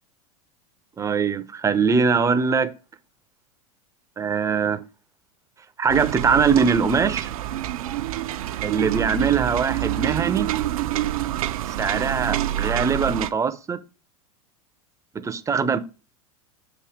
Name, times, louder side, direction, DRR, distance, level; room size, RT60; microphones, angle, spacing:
voice 1, 1.0-2.7 4.2-4.8 5.8-7.3 8.6-10.5 11.8-13.8 15.2-15.8, right 5 dB, 15° right, 0.6 m, -22 dB
sound 1, 5.9-13.3, right 13 dB, 80° right, 0.6 m, -27 dB
7.2 x 2.7 x 4.9 m
hypercardioid pair, 105°, 18 cm